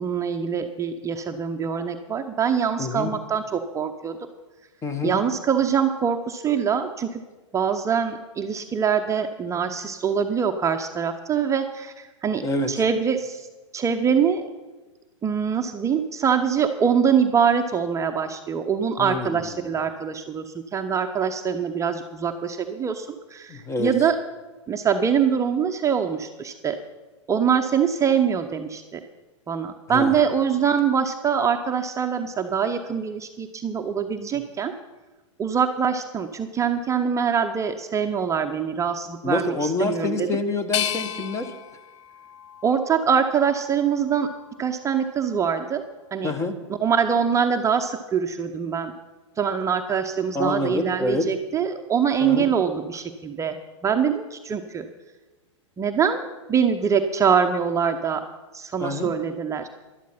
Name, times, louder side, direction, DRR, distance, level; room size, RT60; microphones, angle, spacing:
voice 1, 0.0-4.2 5.0-7.2 7.5-12.4 12.7-13.5 13.7-14.5 15.2-24.2 24.7-26.8 27.3-29.0 29.5-34.7 35.4-40.3 42.6-44.3 44.6-45.8 46.1-46.3 46.8-48.9 49.4-53.6 53.8-54.9 55.8-56.2 56.5-58.2 58.5-59.7, right 7 dB, 20° right, 5 dB, 0.7 m, -24 dB
voice 2, 2.8-3.1 4.8-5.2 12.4-12.7 19.0-19.7 23.5-23.9 29.9-30.1 34.3-34.4 39.2-41.5 46.2-46.6 50.3-51.3 52.2-52.5 58.8-59.1, left 2 dB, 20° left, 10 dB, 1.2 m, -27 dB
sound 1, 40.7-43.7 44.2-45.0, left 11 dB, 65° left, 0.6 m, -34 dB
11.5 x 11.5 x 5.7 m, 1.2 s
hypercardioid pair, 110°, 16 cm